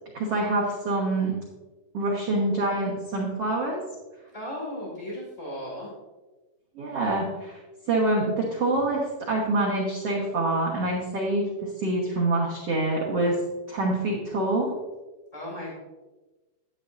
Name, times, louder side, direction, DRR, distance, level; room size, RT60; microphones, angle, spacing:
voice 1, 0.1-1.3 1.9-3.8 6.7-7.6 7.9-13.4 13.7-14.7, right 2 dB, 80° right, -4 dB, 1.3 m, -26 dB
voice 2, 4.3-5.9 15.3-15.7, left 1 dB, 20° left, -4 dB, 1.0 m, -35 dB
11.0 x 10.0 x 2.6 m, 1.2 s
omnidirectional pair, 5.0 m